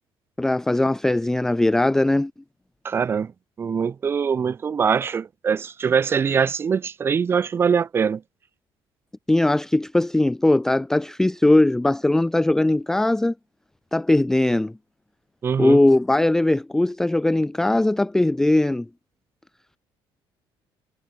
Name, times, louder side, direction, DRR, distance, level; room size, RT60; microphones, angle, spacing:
voice 1, 0.4-2.3 9.3-13.3 13.9-14.7 15.6-18.9, left 2 dB, 5° left, 0.5 m, -20 dB
voice 2, 2.8-3.3 3.6-8.2 15.4-15.8, right 6 dB, 25° right, 1.4 m, -23 dB
cardioid pair, 180°, 9 cm